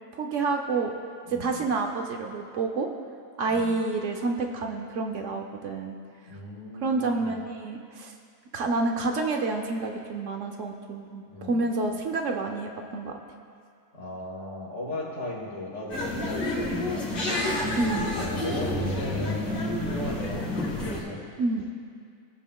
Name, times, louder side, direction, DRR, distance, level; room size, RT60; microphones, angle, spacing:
voice 1, 0.1-0.9 1.4-2.9 3.4-6.0 6.8-8.1 8.5-13.1 17.8-18.1 21.4-21.7, right 3 dB, 65° right, 3 dB, 1.0 m, -28 dB
voice 2, 1.3-1.7 3.5-3.8 6.3-7.4 11.2-11.6 13.9-17.1 18.1-21.2, left 1 dB, 60° left, -4 dB, 2.3 m, -37 dB
sound 1, 15.9-21.0, left 1 dB, 85° left, 2.3 m, -29 dB
21.0 x 7.1 x 2.3 m, 2.3 s
omnidirectional pair, 1.4 m